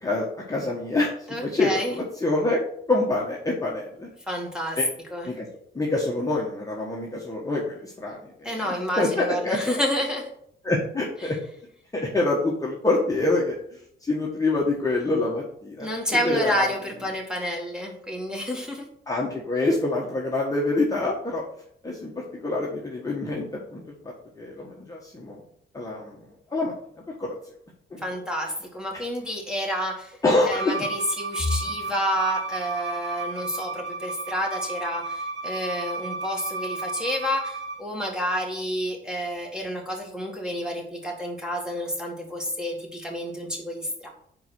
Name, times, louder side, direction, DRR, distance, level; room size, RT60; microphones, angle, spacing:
voice 1, 0.0-1.1 1.4-2.6 2.9-4.1 4.8-4.9 5.3-5.5 5.7-9.6 10.6-11.4 11.9-13.6 14.0-15.9 16.2-16.6 19.1-21.4 21.8-23.8 24.4-25.4 25.7-26.1 26.5-26.7 27.2-27.3 27.9-28.0 30.2-30.9, left 2 dB, 15° left, -3 dB, 1.4 m, -26 dB
voice 2, 1.3-2.0 4.3-4.8 5.1-5.3 8.4-10.3 11.2-11.3 15.8-18.8 28.0-30.2 30.4-44.1, equal, 5° right, -1 dB, 2.1 m, -29 dB
Bowed string instrument, 30.5-37.8, right 3 dB, 60° right, 1.4 m, -33 dB
4.8 x 4.6 x 6.1 m, 0.68 s
cardioid pair, 90°, 20 cm